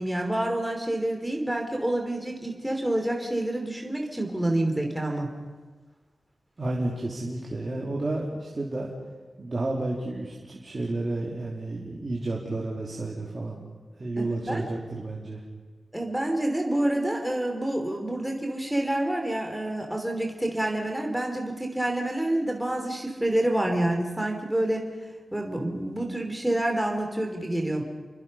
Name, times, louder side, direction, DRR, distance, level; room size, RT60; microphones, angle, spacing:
voice 1, 0.0-5.4 14.2-14.6 15.9-24.9 25.3-27.8, right 1 dB, 5° right, 2 dB, 3.2 m, -28 dB
voice 2, 6.6-8.9 9.4-13.6 14.0-15.4, right 2 dB, 35° right, -3 dB, 3.0 m, -31 dB
29.5 x 24.0 x 5.5 m, 1.4 s
wide cardioid pair, 135°, 0 cm